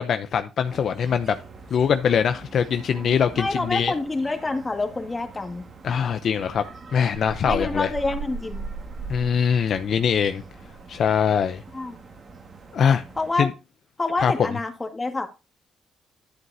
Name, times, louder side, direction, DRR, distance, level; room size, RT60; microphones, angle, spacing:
voice 1, 0.0-1.4 1.7-3.9 5.8-6.6 6.9-7.9 9.1-10.4 10.9-11.6 12.7-13.0 13.4-13.5 14.2-14.3, left 7 dB, 60° left, 0.6 m, -22 dB
sound 1, 0.6-13.3, right 4 dB, 45° right, 1.8 m, -40 dB
voice 2, 3.4-5.7 7.5-8.7 11.7-12.0 13.2-13.5 14.0-15.3, left 3 dB, 20° left, 1.9 m, -27 dB
11.0 x 7.9 x 2.7 m
cardioid pair, 90°, 0 cm